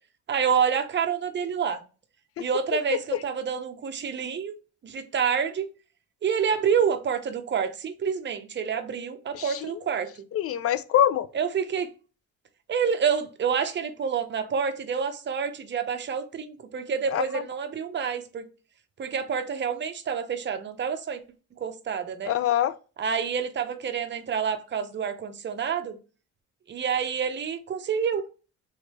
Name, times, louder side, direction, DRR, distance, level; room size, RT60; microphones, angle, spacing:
voice 1, 0.3-1.8 2.4-4.5 4.8-5.7 6.2-10.1 11.3-11.9 12.7-18.4 19.0-21.2 21.6-22.3 23.0-26.0 26.7-28.2, right 7 dB, 35° right, 0.6 m, -28 dB
voice 2, 9.3-9.8 10.3-11.3 17.1-17.2 22.2-22.7, left 11 dB, 50° left, 0.4 m, -24 dB
3.2 x 3.1 x 3.0 m
cardioid pair, 90°, 30 cm